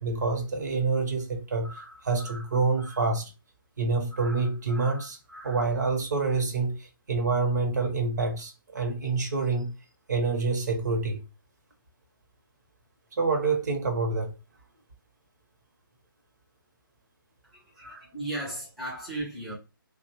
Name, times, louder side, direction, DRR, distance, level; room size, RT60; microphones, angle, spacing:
voice 1, 0.0-3.3 3.8-9.7 10.1-11.2 13.2-14.3 17.8-18.0, right 4 dB, 50° right, 0.7 m, -27 dB
voice 2, 17.4-19.5, right 1 dB, ahead, 0.5 m, -36 dB
2.6 x 2.1 x 2.8 m
figure-of-eight pair, 140°, 12 cm